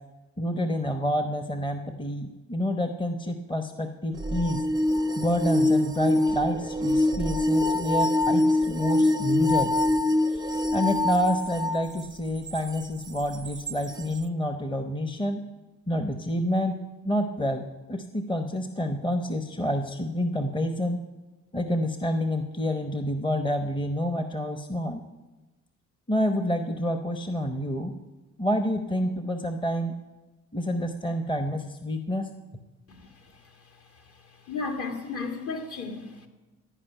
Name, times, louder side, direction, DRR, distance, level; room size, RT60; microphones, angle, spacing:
voice 1, 0.4-4.6 5.2-9.7 10.3-10.4 10.7-15.5 15.9-16.8 17.0-21.0 21.5-25.0 26.1-27.9 28.4-29.9 30.5-32.3, equal, 15° left, 0.9 m, -28 dB
sound 1, 4.2-11.9 12.6-12.7 13.7-13.8, left 2 dB, 15° right, 0.5 m, -24 dB
voice 2, 34.5-36.3, left 4 dB, 50° left, 2.1 m, -33 dB
16.0 x 5.3 x 9.1 m
cardioid pair, 90°, 30 cm